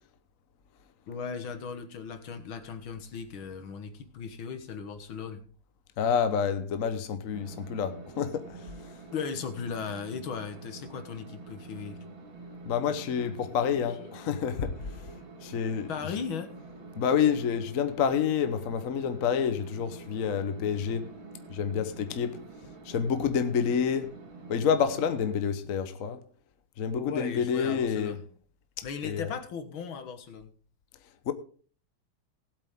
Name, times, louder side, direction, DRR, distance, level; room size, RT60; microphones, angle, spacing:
voice 1, 1.1-5.4 9.1-12.0 14.0-14.2 15.9-16.5 26.9-28.2 28.8-30.5, left 6 dB, 75° left, 2.1 m, -37 dB
voice 2, 6.0-8.7 12.6-14.8 15.4-15.9 17.0-21.1 21.5-22.4 22.8-24.1 24.5-26.2 26.8-28.2 28.8-29.3 31.3-31.4, left 7 dB, 50° left, 1.1 m, -28 dB
sound 1, 7.3-25.3, right 3 dB, 70° right, 2.7 m, -47 dB
18.5 x 8.2 x 3.6 m
omnidirectional pair, 2.3 m